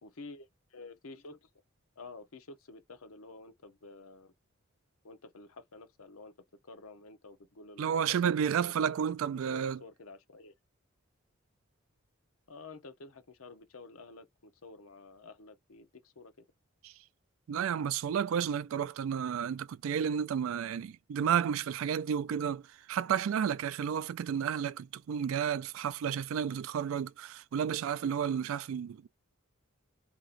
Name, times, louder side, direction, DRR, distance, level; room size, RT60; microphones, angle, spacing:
voice 1, 0.0-1.5 2.0-4.3 5.0-6.3 6.6-8.9 9.3-10.5 12.5-16.3, left 3 dB, 90° left, 0.8 m, -50 dB
voice 2, 7.8-9.8 16.8-16.9 17.5-29.1, right 8 dB, 75° right, 0.3 m, -31 dB
2.9 x 2.5 x 3.8 m
head